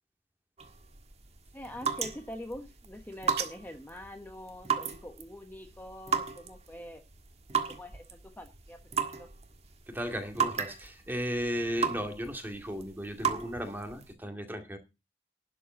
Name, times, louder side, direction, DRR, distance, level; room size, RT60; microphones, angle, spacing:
sound 1, 0.6-14.1, right 6 dB, 40° right, 1.6 m, -36 dB
voice 1, 1.5-7.0 7.7-8.8 9.0-9.3, left 1 dB, 10° left, 1.1 m, -44 dB
sound 2, 2.9-3.9, right 10 dB, 70° right, 1.6 m, -41 dB
voice 2, 9.9-14.8, equal, 10° right, 2.2 m, -35 dB
12.0 x 5.4 x 8.7 m
head